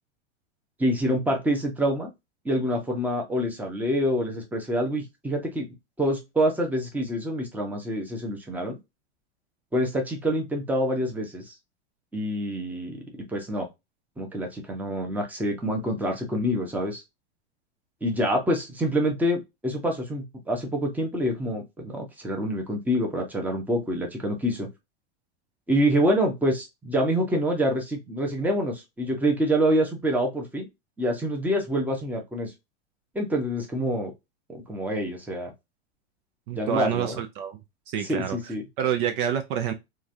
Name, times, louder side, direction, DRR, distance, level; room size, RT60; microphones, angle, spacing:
voice 1, 0.8-2.1 2.4-5.7 6.0-8.8 9.7-11.5 12.1-13.0 13.3-13.7 14.2-17.0 18.0-24.7 25.7-30.7 31.0-32.5 33.1-34.1 34.5-35.5 36.5-37.2 38.1-38.6, equal, 5° right, 0.8 m, -26 dB
voice 2, 36.5-37.6 37.9-39.7, right 9 dB, 50° right, 0.5 m, -28 dB
3.1 x 2.5 x 2.6 m
hypercardioid pair, 125°, 34 cm